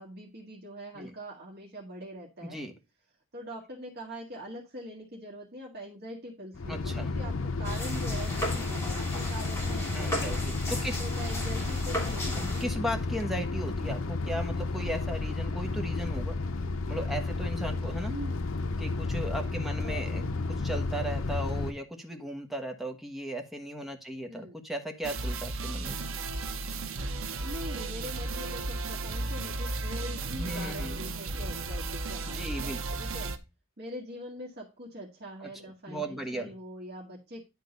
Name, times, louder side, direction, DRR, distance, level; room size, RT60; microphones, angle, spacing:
voice 1, 0.0-2.6 3.3-10.4 11.0-12.6 18.1-18.3 19.8-20.1 24.3-24.6 27.1-33.3 33.8-37.4, equal, 55° right, -2 dB, 1.8 m, -43 dB
voice 2, 2.4-2.7 6.7-7.1 9.9-11.0 12.2-16.4 16.9-18.1 18.8-20.3 20.6-26.0 30.4-31.0 32.2-32.8 35.4-35.5 35.9-36.5, equal, ahead, 3 dB, 1.3 m, -36 dB
sound 1, 6.5-21.7, left 3 dB, 80° left, 0.7 m, -32 dB
sound 2, 7.6-12.6, left 1 dB, 15° left, 2.8 m, -36 dB
sound 3, 25.0-33.4, right 3 dB, 85° right, 0.9 m, -34 dB
10.5 x 3.8 x 5.2 m, 0.26 s
head